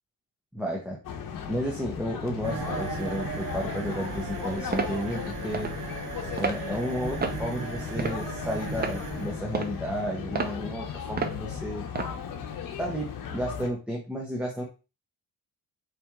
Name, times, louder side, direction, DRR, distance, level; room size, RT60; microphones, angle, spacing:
voice 1, 0.5-1.0 1.5-5.7 6.4-11.8 12.8-14.6, equal, 5° right, -1 dB, 0.9 m, -32 dB
sound 1, 1.0-13.7, left 7 dB, 60° left, 0.9 m, -36 dB
sound 2, 2.4-12.0, right 5 dB, 55° right, 1.2 m, -38 dB
sound 3, 4.7-4.9 5.5-5.7 6.4-6.6 7.2-7.4 8.0-8.3 8.8-9.0 9.5-9.8 10.3-10.5 11.2-11.4 11.9-12.1, right 4 dB, 25° right, 0.6 m, -30 dB
4.3 x 3.2 x 3.6 m, 0.32 s
cardioid pair, 105°, 37 cm